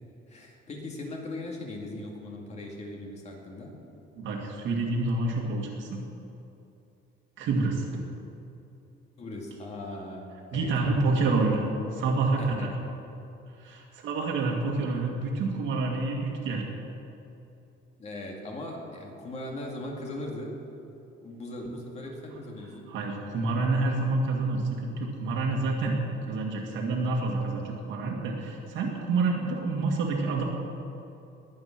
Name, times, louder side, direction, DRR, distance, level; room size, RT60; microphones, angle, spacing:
voice 1, 0.3-3.8 9.2-11.2 12.4-12.7 13.6-13.8 18.0-20.5 21.2-22.9, left 1 dB, 30° left, 0 dB, 2.3 m, -39 dB
voice 2, 4.2-6.0 7.4-7.9 10.5-11.7 11.9-12.7 13.6-16.6 22.9-26.0 26.3-30.4, right 3 dB, 65° right, -1 dB, 2.2 m, -28 dB
21.0 x 8.8 x 6.0 m, 2.8 s
cardioid pair, 175°, 21 cm